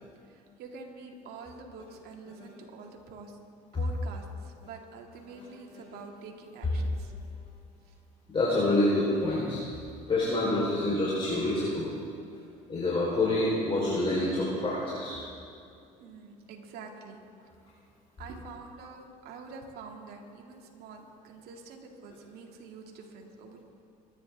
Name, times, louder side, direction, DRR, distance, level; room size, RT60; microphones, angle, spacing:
voice 1, 0.3-3.4 3.7-7.1 7.8-8.0 12.3-12.4 16.0-17.2 18.2-23.6, right 4 dB, 60° right, 1 dB, 2.4 m, -46 dB
voice 2, 8.3-9.6 10.1-11.9 12.7-15.2, left 2 dB, 30° left, -6 dB, 4.2 m, -27 dB
24.5 x 11.0 x 3.6 m, 2.4 s
supercardioid pair, 80°, 18 cm